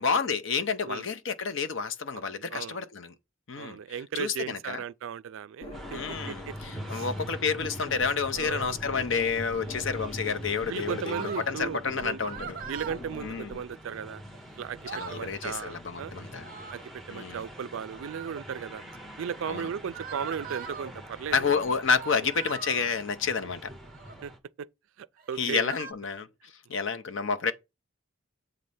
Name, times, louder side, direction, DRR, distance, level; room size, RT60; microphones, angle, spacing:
voice 1, 0.0-3.1 3.5-3.8 4.2-4.8 5.9-12.6 13.2-13.5 14.9-16.5 17.1-17.4 19.5-19.7 21.3-23.7 25.4-26.3 26.7-27.5, left 5 dB, 60° left, 0.6 m, -29 dB
voice 2, 2.1-2.8 3.6-6.6 6.9-7.1 8.3-8.8 9.6-9.9 10.7-12.3 12.7-14.2 14.6-16.1 16.7-18.8 19.2-21.5 24.2-24.3 24.6-24.7 25.0-25.7, right 7 dB, 65° right, 0.3 m, -36 dB
sound 1, 5.6-6.9 7.1-13.6, left 2 dB, 25° left, 1.0 m, -45 dB
sound 2, 5.7-24.4, equal, ahead, 0.9 m, -43 dB
sound 3, 11.0-11.5 12.2-13.0 14.3-14.4 14.7-15.3 16.3-16.9 17.8-18.4 19.9-20.9 21.9-22.9 23.8-24.2 25.2-25.9, right 6 dB, 40° right, 0.7 m, -41 dB
7.8 x 3.2 x 5.4 m
head